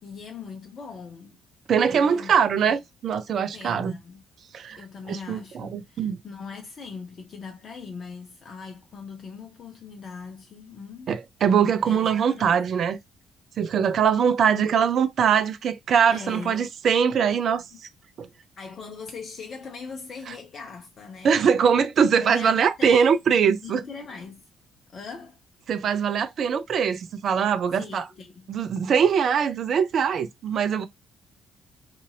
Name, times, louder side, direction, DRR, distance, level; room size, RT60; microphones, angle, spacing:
voice 1, 0.0-1.4 1.9-2.3 2.7-2.8 3.5-4.2 4.8-11.1 11.8-12.6 16.1-16.5 17.7-17.8 18.6-21.4 22.2-23.2 23.6-24.5 24.9-25.4 27.7-28.5, left 5 dB, 45° left, 0.6 m, -40 dB
voice 2, 1.7-4.0 4.5-4.8 5.1-6.2 11.1-13.0 13.6-17.6 18.2-18.3 21.2-23.8 25.7-28.0 28.5-30.9, right 7 dB, 50° right, 0.3 m, -22 dB
2.8 x 2.6 x 2.5 m
figure-of-eight pair, 45°, 0 cm